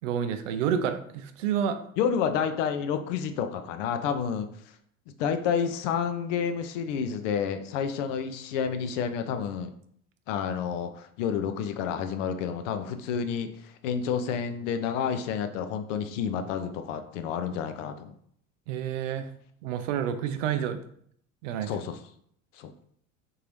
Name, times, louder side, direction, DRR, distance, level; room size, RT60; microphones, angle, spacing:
voice 1, 0.0-1.8 18.7-19.3 19.6-20.8 21.4-21.7, right 8 dB, 65° right, 9 dB, 0.5 m, -29 dB
voice 2, 2.0-4.5 5.2-9.7 10.3-18.1 21.7-22.0 22.5-22.7, left 7 dB, 65° left, 8 dB, 0.5 m, -29 dB
3.8 x 2.7 x 3.1 m, 0.65 s
figure-of-eight pair, 65°, 40 cm